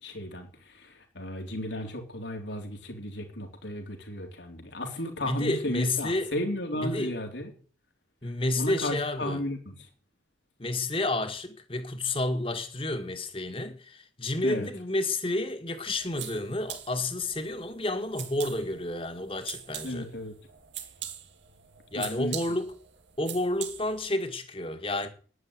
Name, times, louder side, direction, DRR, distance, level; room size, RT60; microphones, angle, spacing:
voice 1, 0.0-7.5 8.6-9.7 14.4-14.7 19.8-20.3 21.9-22.4, left 1 dB, 80° left, 3.8 m, -34 dB
voice 2, 5.2-6.3 6.7-7.1 8.2-9.4 10.6-20.1 21.9-22.7 23.2-25.1, left 2 dB, 30° left, 1.9 m, -30 dB
sound 1, 15.8-24.1, right 10 dB, 85° right, 2.7 m, -43 dB
11.0 x 10.0 x 9.6 m
head